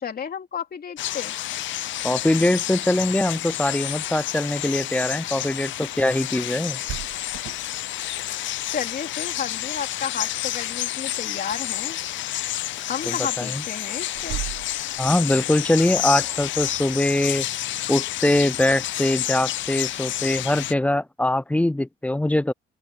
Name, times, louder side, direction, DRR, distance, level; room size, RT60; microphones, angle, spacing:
voice 1, 0.0-1.3 8.7-12.0 12.9-14.4, left 7 dB, 50° left, 3.2 m, -32 dB
sound 1, 1.0-20.7, left 14 dB, 75° left, 0.6 m, -29 dB
voice 2, 2.0-6.8 13.1-13.6 15.0-17.5 17.9-22.5, left 1 dB, 5° left, 0.5 m, -22 dB
sound 2, 6.8-8.2 9.3-9.9 10.2-10.7 14.1-15.5, right 14 dB, 70° right, 0.6 m, -36 dB
open air
cardioid pair, 90°, 20 cm